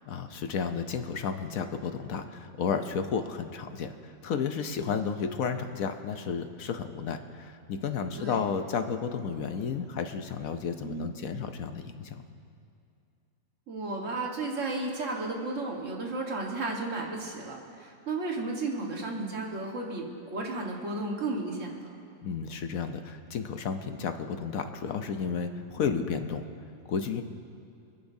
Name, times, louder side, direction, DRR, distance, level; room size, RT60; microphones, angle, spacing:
voice 1, 0.0-12.2 22.2-26.4 26.9-27.2, left 6 dB, 65° left, 7 dB, 1.0 m, -32 dB
voice 2, 10.8-11.1 13.7-21.9, right 2 dB, 50° right, 0 dB, 1.7 m, -33 dB
28.5 x 10.5 x 2.7 m, 2.5 s
omnidirectional pair, 1.8 m